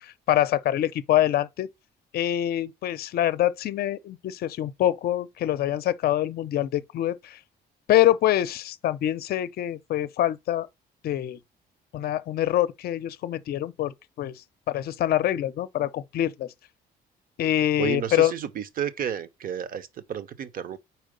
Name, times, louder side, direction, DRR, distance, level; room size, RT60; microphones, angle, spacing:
voice 1, 0.0-1.7 2.1-7.4 7.9-10.7 11.0-11.4 11.9-14.3 14.7-16.5 17.4-18.3, left 12 dB, 60° left, 0.5 m, -25 dB
voice 2, 17.8-20.8, right 9 dB, 50° right, 0.8 m, -31 dB
4.6 x 4.3 x 5.1 m
cardioid pair, 125°, 18 cm